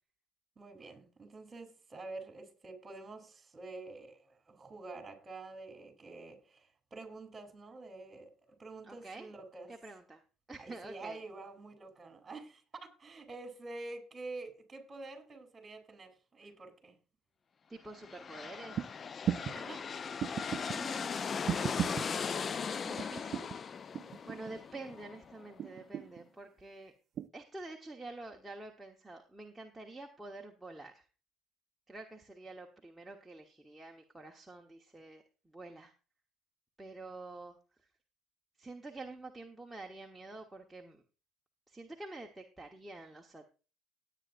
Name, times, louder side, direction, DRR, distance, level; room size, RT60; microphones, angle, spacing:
voice 1, 0.6-8.3 8.6-9.7 10.6-17.0 19.5-19.9, right 3 dB, 25° right, 3.6 m, -48 dB
voice 2, 8.9-9.3 9.7-10.2 10.5-11.2 17.7-18.9 20.7-21.4 22.8-23.7 24.2-26.9 27.3-31.1 31.9-35.2 35.5-35.9 36.8-37.6 38.6-41.0 41.7-43.5, right 2 dB, 10° right, 1.3 m, -48 dB
sound 1, 17.9-25.6, left 6 dB, 40° left, 0.4 m, -38 dB
sound 2, 18.7-18.9 19.3-19.6 20.2-20.8 21.5-22.1 23.0-23.6 23.9-24.6 25.6-26.2 27.2-27.3, right 9 dB, 50° right, 0.5 m, -35 dB
18.0 x 9.0 x 2.6 m
supercardioid pair, 85°, 0 cm